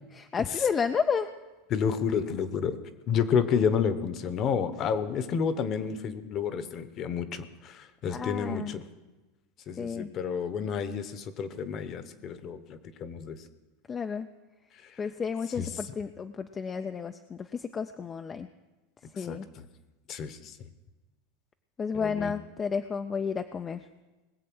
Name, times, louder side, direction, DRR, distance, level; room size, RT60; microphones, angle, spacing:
voice 1, 0.1-1.3 8.1-8.8 9.8-10.1 13.9-14.3 15.0-18.5 19.1-19.5 21.8-23.8, left 6 dB, 20° left, 8 dB, 0.4 m, -31 dB
voice 2, 1.7-2.8 3.1-8.8 9.7-13.4 15.6-15.7 19.2-19.4 20.1-20.6 21.9-22.3, left 7 dB, 35° left, 12 dB, 0.9 m, -30 dB
20.0 x 7.7 x 6.2 m, 1.1 s
supercardioid pair, 145°, 0 cm